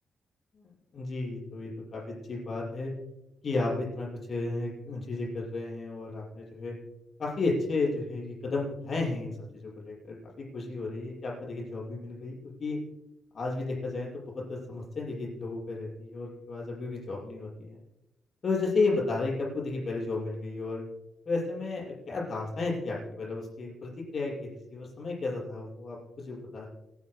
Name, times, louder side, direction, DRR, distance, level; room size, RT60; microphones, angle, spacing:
voice 1, 0.5-2.9 3.4-6.7 7.2-10.1 10.5-12.8 13.3-17.8 18.4-20.8 21.3-26.7, left 3 dB, 45° left, -4 dB, 6.4 m, -33 dB
29.5 x 11.0 x 2.3 m, 0.91 s
cardioid pair, 100°, 0 cm